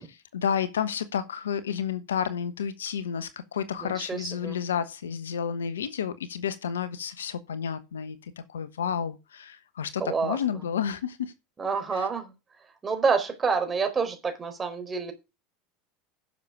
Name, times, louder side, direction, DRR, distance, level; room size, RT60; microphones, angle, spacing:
voice 1, 0.1-11.3 11.9-12.1, left 8 dB, 80° left, 1.1 m, -31 dB
voice 2, 3.8-4.6 10.0-10.4 11.6-12.3 12.8-15.1, right 5 dB, 25° right, 4.3 m, -28 dB
10.5 x 6.8 x 6.0 m
hypercardioid pair, 80°, 0 cm